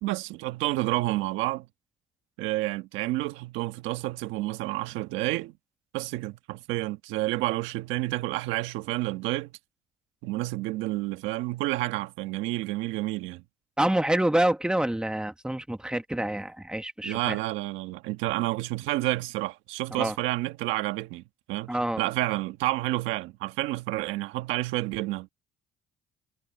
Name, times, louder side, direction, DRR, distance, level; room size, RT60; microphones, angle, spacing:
voice 1, 0.0-1.7 2.4-5.5 5.9-9.5 10.2-13.4 17.0-25.3, right 18 dB, 90° right, 1.4 m, -30 dB
voice 2, 13.8-17.4 20.0-20.1 21.7-22.0, right 1 dB, 5° right, 1.4 m, -27 dB
cardioid pair, 95°, 19 cm